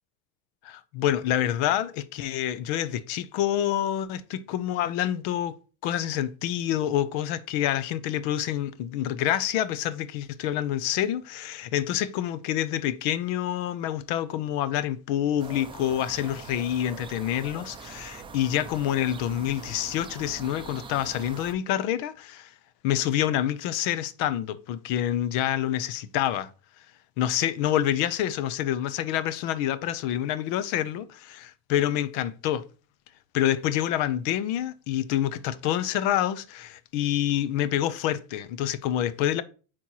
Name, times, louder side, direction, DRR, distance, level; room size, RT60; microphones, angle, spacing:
voice 1, 0.6-5.6 5.8-22.5 22.8-26.5 27.2-32.7 33.3-39.4, left 11 dB, 85° left, 0.8 m, -27 dB
sound 1, 15.4-21.5, right 5 dB, 15° right, 0.3 m, -43 dB
8.5 x 4.4 x 3.0 m
cardioid pair, 160°, 44 cm